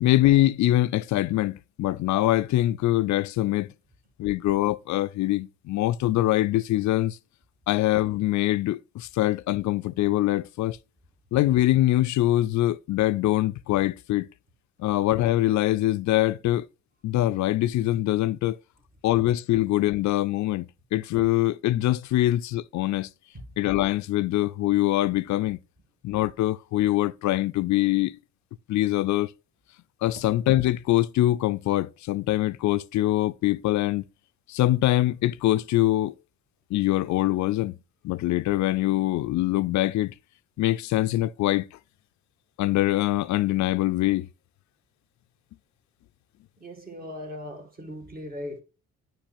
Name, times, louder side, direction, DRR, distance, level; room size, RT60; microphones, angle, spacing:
voice 1, 0.0-3.7 4.2-7.2 7.7-10.8 11.3-14.3 14.8-16.7 17.0-18.6 19.0-23.1 23.6-25.6 26.0-28.2 28.7-29.3 30.0-34.0 34.5-36.1 36.7-37.7 38.0-40.1 40.6-41.7 42.6-44.3, left 15 dB, 70° left, 0.5 m, -23 dB
voice 2, 46.6-48.6, left 1 dB, 30° right, 2.1 m, -38 dB
8.9 x 5.3 x 2.5 m
cardioid pair, 90°, 30 cm